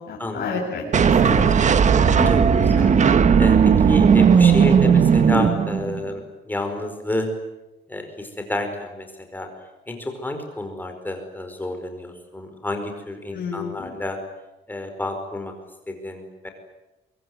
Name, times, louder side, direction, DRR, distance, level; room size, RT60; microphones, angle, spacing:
voice 1, 0.0-0.8 1.2-2.3 13.3-14.0, left 5 dB, 55° left, -4 dB, 7.3 m, -31 dB
sound 1, 0.9-6.1, right 6 dB, 40° right, 1.4 m, -16 dB
voice 2, 2.3-7.3 7.9-9.5 9.9-14.2 14.7-15.5 15.9-16.5, left 1 dB, 10° left, 5 dB, 4.9 m, -30 dB
24.5 x 23.0 x 9.6 m, 1.0 s
cardioid pair, 160°, 19 cm